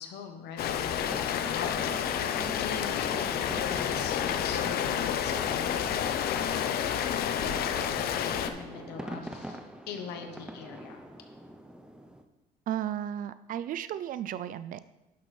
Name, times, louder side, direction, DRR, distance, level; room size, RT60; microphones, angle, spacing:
voice 1, 0.0-9.6 9.9-11.0, left 6 dB, 80° left, 5 dB, 1.0 m, -42 dB
Rain, 0.6-8.5, left 9 dB, 65° left, 0.6 m, -30 dB
sound 1, 0.9-12.2, right 1 dB, 5° right, 0.6 m, -43 dB
voice 2, 12.7-14.8, right 11 dB, 55° right, 14 dB, 0.4 m, -34 dB
11.0 x 6.0 x 3.3 m, 0.99 s
cardioid pair, 110°, 17 cm